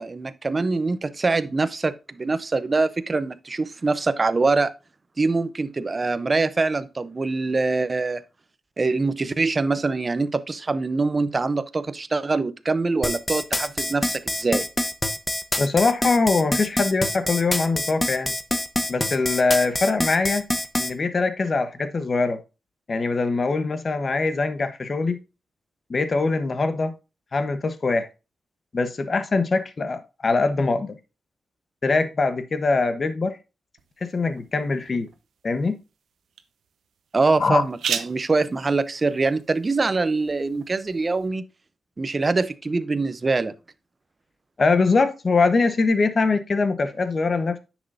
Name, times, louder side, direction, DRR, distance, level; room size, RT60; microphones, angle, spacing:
voice 1, 0.0-4.7 5.2-8.2 8.8-14.7 37.1-41.5 42.0-43.5, right 3 dB, 30° right, 0.7 m, -24 dB
sound 1, 13.0-20.9, left 1 dB, 15° left, 1.0 m, -25 dB
voice 2, 15.6-18.3 18.9-20.5 20.8-22.4 22.9-25.2 25.9-26.9 27.3-28.1 28.7-31.0 31.8-33.4 34.0-35.1 35.4-35.8 37.4-37.6 44.6-47.6, left 3 dB, 40° left, 1.1 m, -22 dB
sound 2, 33.8-41.3, right 7 dB, 90° right, 1.0 m, -38 dB
10.0 x 6.2 x 2.7 m
wide cardioid pair, 115°, 0 cm